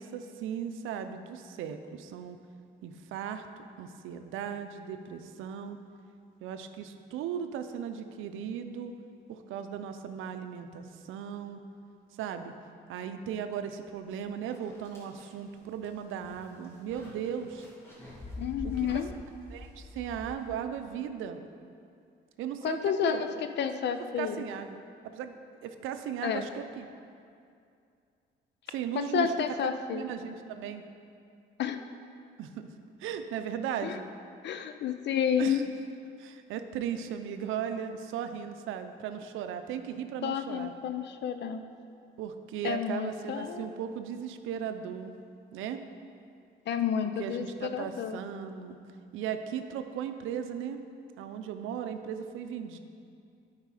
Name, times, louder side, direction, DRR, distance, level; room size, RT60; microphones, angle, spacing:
voice 1, 0.0-2.4 2.8-3.5 3.8-5.8 6.4-8.9 9.3-11.6 12.2-12.5 12.9-17.6 18.6-19.0 19.5-21.4 22.4-23.2 23.8-24.8 25.0-25.3 25.6-26.9 28.7-29.3 29.6-30.8 32.4-32.7 33.0-34.1 35.4-35.6 36.2-40.7 42.2-45.1 45.5-45.8 47.2-48.8 49.1-50.8 51.2-52.8, right 8 dB, 90° right, 8 dB, 0.5 m, -37 dB
sound 1, 14.0-14.1 14.5-20.9, left 1 dB, 10° left, 1.8 m, -46 dB
voice 2, 18.4-19.1 22.6-23.3 23.6-24.5 26.2-26.4 29.0-30.0 31.6-31.8 33.8-33.9 34.4-35.6 40.2-41.6 42.6-43.7 46.7-48.2, left 8 dB, 60° left, 8 dB, 0.5 m, -30 dB
9.1 x 4.9 x 4.9 m, 2.4 s
cardioid pair, 90°, 20 cm